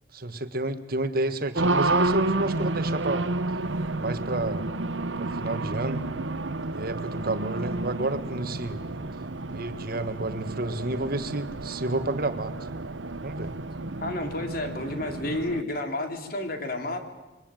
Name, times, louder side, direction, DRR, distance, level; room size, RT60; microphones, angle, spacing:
voice 1, 0.1-3.2 4.0-4.6 5.2-6.0 6.7-8.8 9.5-12.5 13.2-13.5, right 2 dB, 55° right, 9 dB, 1.7 m, -30 dB
Race car auto racing, 1.6-15.6, right 2 dB, 85° right, 1.1 m, -30 dB
voice 2, 14.0-17.0, left 2 dB, 55° left, 5 dB, 3.4 m, -31 dB
27.5 x 23.0 x 9.1 m, 1.1 s
head